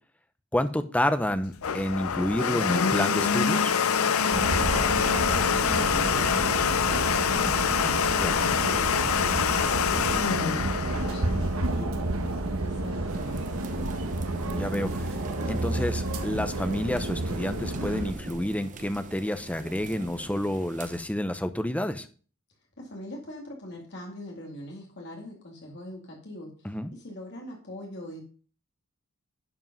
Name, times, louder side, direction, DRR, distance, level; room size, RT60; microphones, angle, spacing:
voice 1, 0.5-3.7 8.2-8.4 14.4-15.2 15.5-22.1 26.6-26.9, left 1 dB, 5° left, 10 dB, 0.7 m, -29 dB
Domestic sounds home sounds, 1.3-12.0, left 7 dB, 80° left, 0.6 m, -25 dB
sound 1, 4.3-18.1, right 2 dB, 75° right, 1.3 m, -30 dB
voice 2, 4.4-8.1 8.5-14.0 22.8-26.5 26.9-28.2, left 1 dB, 55° left, -1 dB, 2.5 m, -42 dB
sound 2, 13.1-21.0, right 3 dB, 35° right, 0.9 m, -43 dB
11.0 x 5.2 x 5.5 m, 0.41 s
head